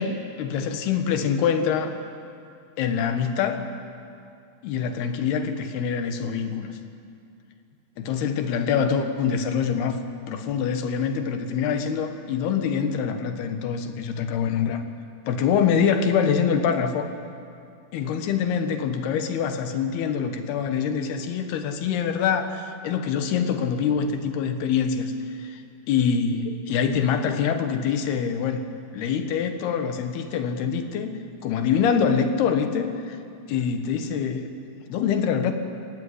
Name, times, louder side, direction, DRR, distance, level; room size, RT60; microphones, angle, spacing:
voice 1, 0.0-2.0 2.8-3.6 4.6-6.8 8.0-10.0 10.3-14.8 15.3-17.1 17.9-25.6 25.9-28.6 28.9-33.2 33.5-34.5 34.9-35.5, left 7 dB, 70° left, 7 dB, 3.3 m, -25 dB
27.5 x 15.5 x 9.7 m, 2.5 s
omnidirectional pair, 4.8 m